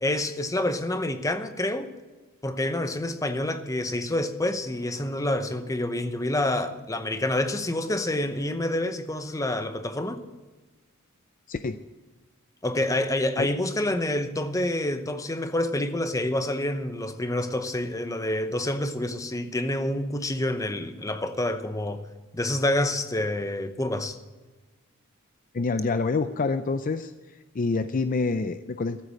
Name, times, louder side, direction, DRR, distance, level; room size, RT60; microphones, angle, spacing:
voice 1, 0.0-1.9 2.4-10.2 12.6-22.0 22.3-24.2, left 1 dB, 15° left, 0.8 m, -27 dB
voice 2, 11.5-11.8 13.4-13.5 25.5-27.1 27.5-29.0, left 4 dB, 40° left, 0.4 m, -27 dB
14.0 x 8.1 x 8.3 m
head